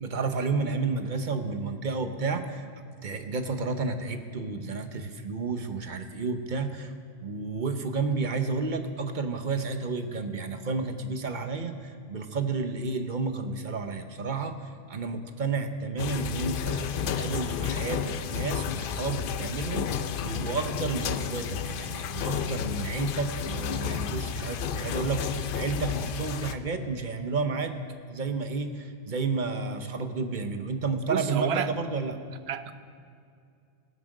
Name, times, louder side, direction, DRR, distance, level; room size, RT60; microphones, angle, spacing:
voice 1, 0.0-2.7 3.0-6.9 7.2-27.7 28.1-32.2, right 4 dB, 50° right, 7 dB, 0.9 m, -31 dB
sound 1, 16.0-26.5, left 7 dB, 60° left, 0.7 m, -31 dB
voice 2, 31.1-31.7 32.5-32.7, right 9 dB, 75° right, 12 dB, 0.9 m, -29 dB
17.5 x 7.5 x 6.4 m, 2.3 s
omnidirectional pair, 1.1 m